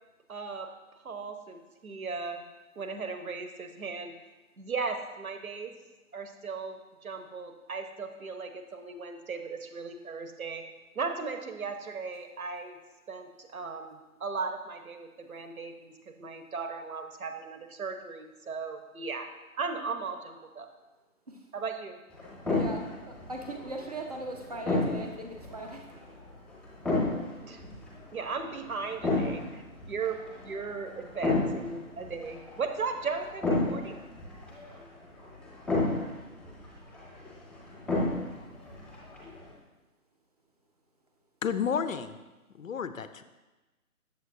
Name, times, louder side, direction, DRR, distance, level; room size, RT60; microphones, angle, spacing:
voice 1, 0.3-0.7 1.0-2.4 2.8-4.1 4.6-5.8 6.1-10.7 10.9-12.8 13.1-19.3 19.6-20.7 21.5-22.0 27.4-27.6 28.1-29.6 29.9-34.0, right 4 dB, 70° right, 6 dB, 1.0 m, -37 dB
sound 1, 22.1-39.5, left 2 dB, ahead, 0.9 m, -33 dB
voice 2, 22.5-25.9, right 1 dB, 25° right, 2 dB, 0.6 m, -39 dB
voice 3, 41.4-42.2 42.6-43.2, left 7 dB, 65° left, 12 dB, 0.6 m, -31 dB
8.1 x 7.3 x 2.6 m, 1.1 s
figure-of-eight pair, 150°, 44 cm